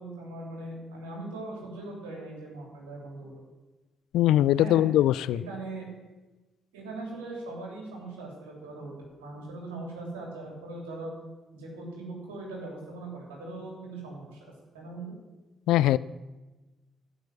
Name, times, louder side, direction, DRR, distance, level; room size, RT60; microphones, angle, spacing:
voice 1, 0.0-3.4 4.6-4.8 5.3-5.9 6.7-11.1 11.5-15.1, right 2 dB, 90° right, -1 dB, 3.4 m, -40 dB
voice 2, 4.1-5.4 15.7-16.0, left 13 dB, 75° left, 19 dB, 0.3 m, -21 dB
14.5 x 6.3 x 7.3 m, 1.1 s
hypercardioid pair, 45°, 0 cm